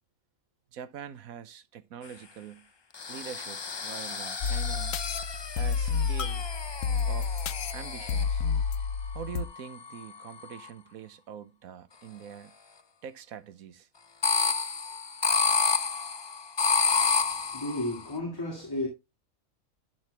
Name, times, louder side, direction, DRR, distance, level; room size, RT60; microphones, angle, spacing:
voice 1, 0.7-2.7 3.1-5.0 5.5-6.5 7.1-7.4 7.7-8.4 9.1-12.5 13.0-13.9, right 8 dB, 85° right, 1.3 m, -44 dB
sound 1, 2.9-8.4 9.1-10.7 14.2-18.1, left 5 dB, 45° left, 0.3 m, -30 dB
sound 2, 4.4-9.4, left 6 dB, 75° left, 1.1 m, -30 dB
voice 2, 16.9-18.9, left 1 dB, 15° left, 1.9 m, -34 dB
12.0 x 6.2 x 3.3 m
omnidirectional pair, 1.4 m